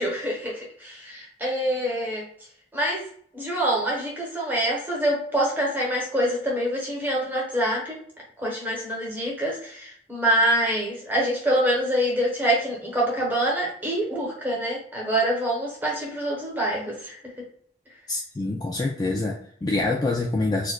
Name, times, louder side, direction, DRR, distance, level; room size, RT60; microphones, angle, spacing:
voice 1, 0.0-2.2 2.7-3.1 3.3-8.0 8.4-17.4, right 1 dB, 10° right, -3 dB, 1.0 m, -25 dB
voice 2, 18.1-20.7, left 2 dB, 20° left, -1 dB, 0.3 m, -26 dB
4.3 x 2.4 x 2.2 m, 0.62 s
head